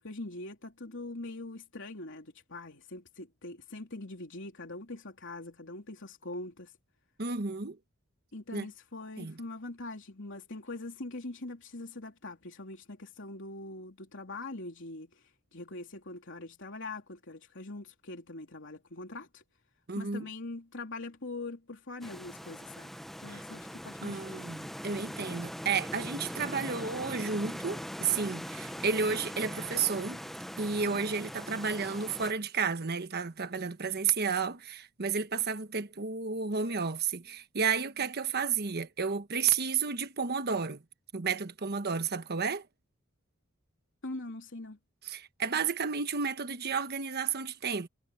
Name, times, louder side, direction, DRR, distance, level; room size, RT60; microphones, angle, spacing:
voice 1, 0.0-6.7 8.3-19.4 19.9-22.9 23.2-24.4 30.8-31.0 44.0-44.8, left 2 dB, 65° left, 3.5 m, -43 dB
voice 2, 7.2-7.8 8.5-8.6 9.2-9.4 19.9-20.3 23.3-23.4 24.0-30.2 30.6-40.8 41.1-42.7 45.0-47.9, right 5 dB, 50° right, 1.2 m, -32 dB
sound 1, 22.0-32.3, equal, ahead, 0.9 m, -41 dB
head